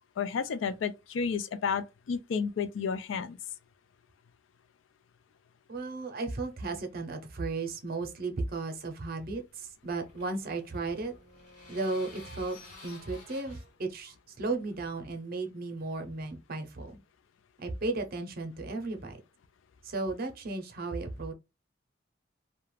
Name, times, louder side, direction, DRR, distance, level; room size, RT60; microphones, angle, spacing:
voice 1, 0.2-3.4, left 6 dB, 80° left, 0.4 m, -31 dB
voice 2, 5.7-11.1 11.7-12.6 12.8-17.0 17.6-19.2 19.8-21.3, right 3 dB, 50° right, 0.6 m, -35 dB
sound 1, 9.5-15.0, left 2 dB, 40° left, 1.1 m, -52 dB
2.4 x 2.1 x 3.1 m
head